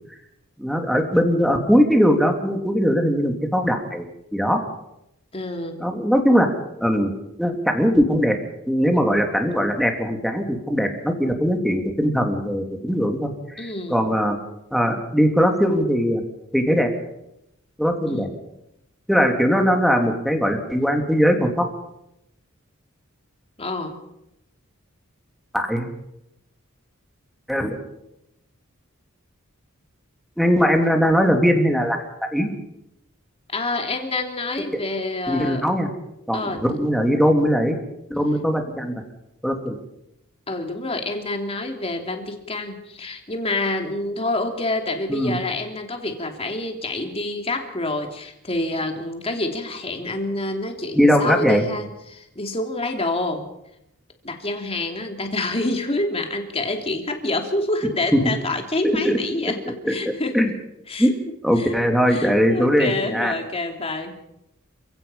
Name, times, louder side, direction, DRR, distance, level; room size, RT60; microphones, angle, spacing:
voice 1, 0.6-4.1 4.3-4.6 5.8-6.5 6.8-7.1 7.4-8.3 8.7-14.4 14.7-16.2 16.5-16.9 17.8-18.3 19.1-21.7 25.5-25.9 27.5-27.7 30.4-32.0 32.3-32.5 35.3-35.9 36.3-37.8 38.1-38.9 39.4-39.7 45.1-45.4 50.9-51.6 58.8-59.2 59.6-59.9 60.3-60.5 61.0-61.1 61.4-63.3, equal, ahead, 3 dB, 2.9 m, -20 dB
voice 2, 5.3-5.8 13.6-14.0 18.1-18.3 23.6-23.9 33.5-35.6 36.3-36.6 40.5-53.5 54.2-60.4 60.9-61.1 61.6-61.7 62.1-64.2, left 2 dB, 30° left, 4 dB, 3.0 m, -27 dB
28.5 x 16.5 x 5.7 m, 0.83 s
head